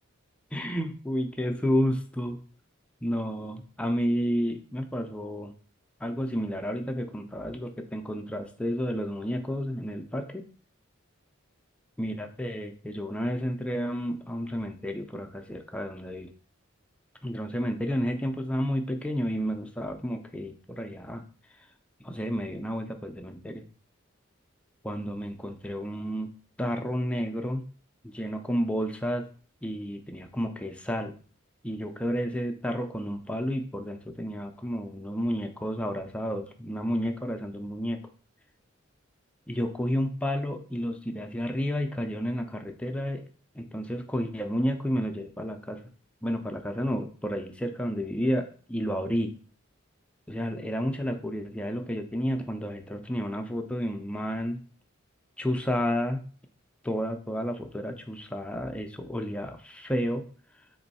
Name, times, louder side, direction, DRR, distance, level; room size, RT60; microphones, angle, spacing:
voice 1, 0.5-2.4 3.0-5.5 6.0-10.4 12.0-16.3 17.2-21.2 22.0-23.6 24.8-26.3 26.6-27.6 28.0-29.2 29.6-31.1 31.6-38.0 39.5-43.2 43.6-45.8 46.2-49.3 50.3-54.6 55.4-56.2 56.8-60.2, equal, 5° left, 5 dB, 0.3 m, -31 dB
4.3 x 3.0 x 4.0 m, 0.42 s
head